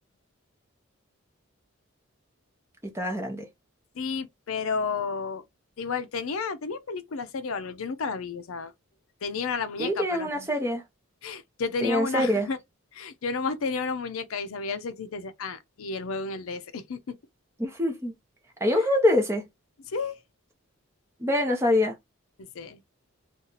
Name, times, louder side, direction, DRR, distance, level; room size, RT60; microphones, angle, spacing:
voice 1, 2.9-3.5 9.8-10.8 11.8-12.5 17.6-18.1 18.6-19.5 21.2-22.0, left 1 dB, 10° right, 0.8 m, -24 dB
voice 2, 4.0-5.4 5.8-8.7 9.2-10.5 11.2-12.6 12.9-17.2 19.9-20.2 22.4-22.8, left 5 dB, 75° left, 0.5 m, -32 dB
2.7 x 2.4 x 3.9 m
head